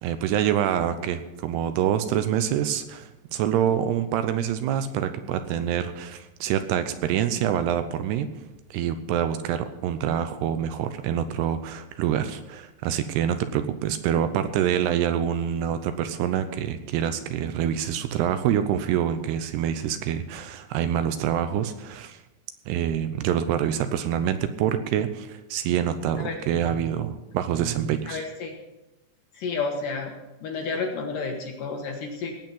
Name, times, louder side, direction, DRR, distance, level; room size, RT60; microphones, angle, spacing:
voice 1, 0.0-8.3 8.7-22.2 22.7-28.2, right 9 dB, 80° right, 10 dB, 2.6 m, -26 dB
voice 2, 28.1-28.6 29.3-30.1 30.4-32.3, left 4 dB, 65° left, 2 dB, 2.3 m, -30 dB
18.0 x 8.0 x 5.5 m, 1.0 s
omnidirectional pair, 5.0 m